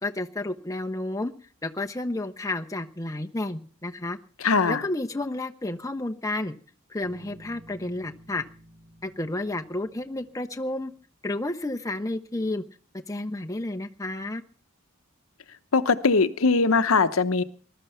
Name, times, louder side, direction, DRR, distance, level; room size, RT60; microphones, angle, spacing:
voice 1, 0.0-1.3 1.6-4.2 4.7-6.5 6.9-8.4 9.0-10.9 11.2-12.6 13.1-14.4, left 2 dB, 15° left, 5 dB, 1.0 m, -31 dB
voice 2, 4.4-4.8 15.7-17.4, left 4 dB, 75° left, 12 dB, 0.9 m, -21 dB
Bass guitar, 7.0-10.8, right 1 dB, 45° right, 5.5 m, -51 dB
20.0 x 12.0 x 5.7 m, 0.41 s
head